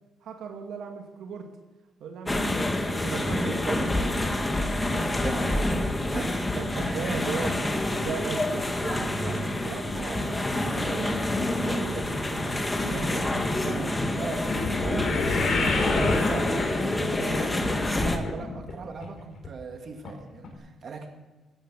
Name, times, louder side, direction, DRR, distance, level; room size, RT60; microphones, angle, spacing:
voice 1, 0.2-1.5 2.0-2.7 2.9-4.4 6.6-11.3 11.7-14.0 14.8-15.1, right 5 dB, 75° right, 3 dB, 2.2 m, -37 dB
sound 1, 2.3-18.2, left 1 dB, 15° left, 2.0 m, -27 dB
voice 2, 4.8-6.3 6.7-7.1 14.1-21.1, right 4 dB, 50° right, 4 dB, 2.2 m, -39 dB
sound 2, 12.3-18.7 19.0-19.5 20.0-20.1 20.4-20.5, left 3 dB, 55° left, 4.2 m, -30 dB
16.0 x 10.5 x 7.4 m, 1.2 s
cardioid pair, 90°, 0 cm